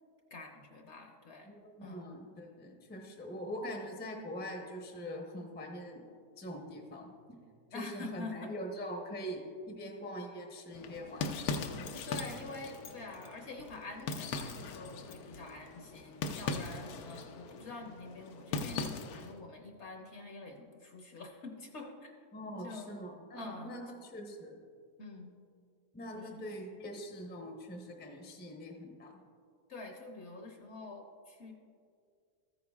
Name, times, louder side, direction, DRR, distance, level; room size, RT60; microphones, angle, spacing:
voice 1, 0.3-2.1 7.7-8.5 12.0-22.1 22.6-22.9 23.3-23.7 25.0-25.3 26.1-26.4 29.7-31.5, left 3 dB, 50° left, 2 dB, 1.0 m, -46 dB
voice 2, 1.4-6.0 6.4-7.1 7.7-9.4 9.7-11.9 22.3-24.6 25.9-29.1, equal, 10° left, 1 dB, 0.6 m, -43 dB
sound 1, 10.7-19.4, left 4 dB, 75° left, 1.1 m, -40 dB
14.0 x 9.4 x 2.4 m, 2.2 s
omnidirectional pair, 1.7 m